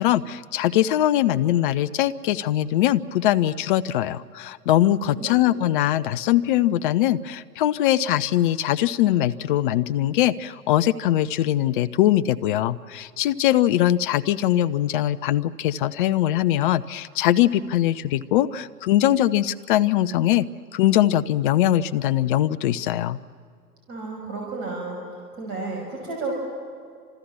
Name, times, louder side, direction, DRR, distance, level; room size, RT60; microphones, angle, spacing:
voice 1, 0.0-20.5 20.7-23.2, left 13 dB, 35° left, 14 dB, 0.8 m, -21 dB
voice 2, 5.1-5.4 23.9-25.0 25.3-26.3, right 3 dB, 30° right, 0 dB, 5.6 m, -32 dB
30.0 x 27.0 x 7.1 m, 2.2 s
figure-of-eight pair, 105°, 47 cm